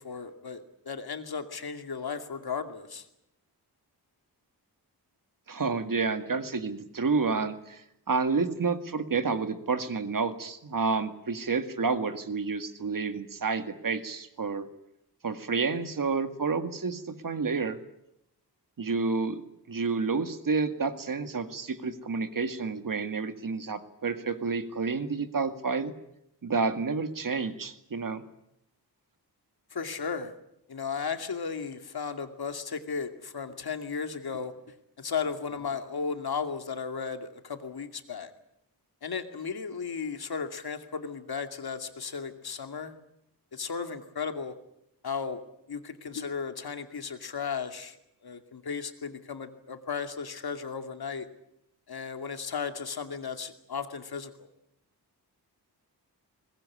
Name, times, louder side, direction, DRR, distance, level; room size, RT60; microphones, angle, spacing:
voice 1, 0.0-3.1 29.7-30.3 30.7-34.5 35.0-38.3 39.0-42.9 43.5-44.5 45.0-45.4 45.7-48.0 48.2-51.3 51.9-54.5, left 6 dB, 70° left, 7 dB, 2.6 m, -35 dB
voice 2, 5.5-7.8 8.1-14.7 15.2-17.8 18.8-19.4 19.7-25.9 26.4-28.2, right 4 dB, 55° right, 9 dB, 2.1 m, -29 dB
22.5 x 20.0 x 9.9 m, 0.79 s
wide cardioid pair, 115°, 39 cm